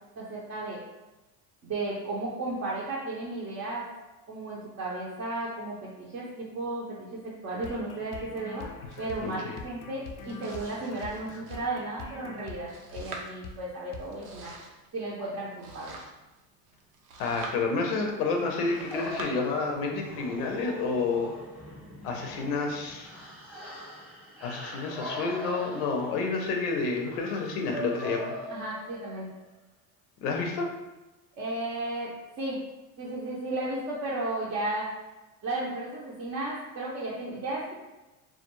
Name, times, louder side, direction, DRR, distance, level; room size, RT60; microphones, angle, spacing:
voice 1, 0.2-0.8 1.6-3.9 4.3-8.7 9.0-14.5 14.9-15.9 28.5-29.3 31.4-32.6 33.0-34.9 35.4-37.7, right 2 dB, 35° right, -6 dB, 0.6 m, -34 dB
sound 1, 7.6-13.1 13.4-13.6 13.9-14.1, left 4 dB, 50° left, 0.4 m, -44 dB
Domestic sounds home sounds, 8.9-19.2, right 3 dB, 90° right, 0.6 m, -48 dB
voice 2, 9.2-9.6 17.2-21.3 22.0-23.1 24.4-28.3 30.2-30.7, left 4 dB, 85° left, 2 dB, 0.7 m, -29 dB
sound 2, 18.3-29.3, equal, 5° right, 0.9 m, -41 dB
2.3 x 2.2 x 2.9 m, 1.1 s
supercardioid pair, 100°, 44 cm